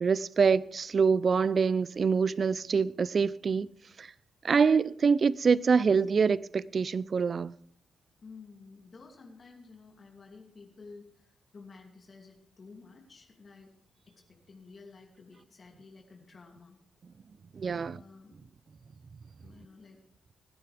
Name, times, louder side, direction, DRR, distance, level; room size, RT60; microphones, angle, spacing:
voice 1, 0.0-3.7 4.0-4.1 4.4-7.5 17.5-18.0, right 5 dB, 50° right, 0.5 m, -25 dB
voice 2, 8.2-13.7 14.1-16.8 17.7-18.5 19.4-20.0, left 4 dB, 50° left, 2.7 m, -52 dB
24.0 x 9.7 x 3.5 m
supercardioid pair, 45°, 0 cm